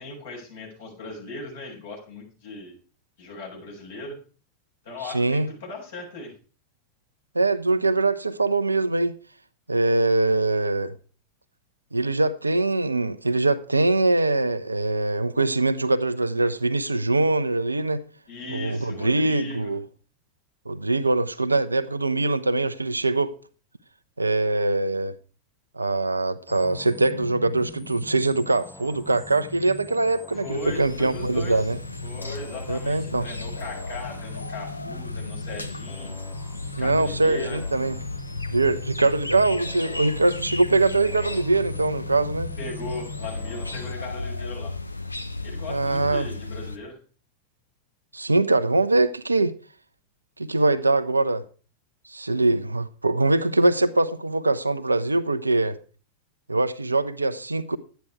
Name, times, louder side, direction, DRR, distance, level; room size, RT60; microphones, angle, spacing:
voice 1, 0.0-2.7 3.2-4.2 4.8-6.3 18.3-19.7 30.3-31.7 32.0-36.1 36.8-37.6 42.6-44.7 45.4-47.0, left 2 dB, 60° left, 7.0 m, -38 dB
voice 2, 5.0-5.5 7.3-9.2 9.7-10.9 11.9-18.0 18.5-19.8 20.7-23.4 24.2-25.1 25.8-31.8 32.7-33.3 36.8-38.0 38.5-42.5 45.7-46.3 48.1-49.5 50.4-51.4 52.1-55.8 56.5-57.8, right 2 dB, 80° right, 0.7 m, -23 dB
sound 1, 26.5-43.9, left 2 dB, 10° left, 0.8 m, -43 dB
sound 2, 30.4-46.8, left 3 dB, 85° left, 0.8 m, -34 dB
11.5 x 9.2 x 5.0 m
figure-of-eight pair, 90°, 0 cm